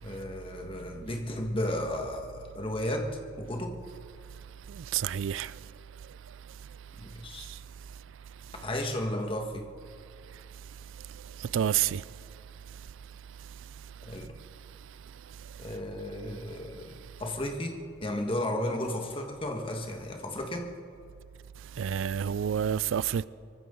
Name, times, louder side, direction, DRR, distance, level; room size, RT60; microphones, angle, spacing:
voice 1, 0.0-3.1 3.4-3.8 7.0-7.5 8.6-9.7 14.0-14.3 15.6-20.7, left 1 dB, 30° left, 1.6 m, -34 dB
voice 2, 4.9-5.5 11.5-12.0 21.8-23.3, right 9 dB, 80° right, 0.4 m, -28 dB
24.0 x 14.5 x 3.9 m
head